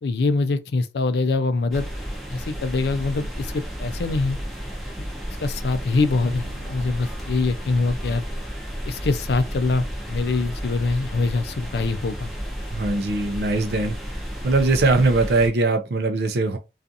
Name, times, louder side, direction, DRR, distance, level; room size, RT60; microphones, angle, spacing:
voice 1, 0.0-1.8 2.3-4.4 5.4-8.2 8.8-12.3, left 3 dB, 70° left, 0.4 m, -24 dB
sound 1, 1.7-15.5, equal, ahead, 0.5 m, -32 dB
Drum, 6.2-9.0, right 1 dB, 30° left, 0.8 m, -43 dB
voice 2, 12.7-14.0 14.4-16.6, right 3 dB, 65° right, 0.4 m, -21 dB
2.4 x 2.4 x 2.6 m
head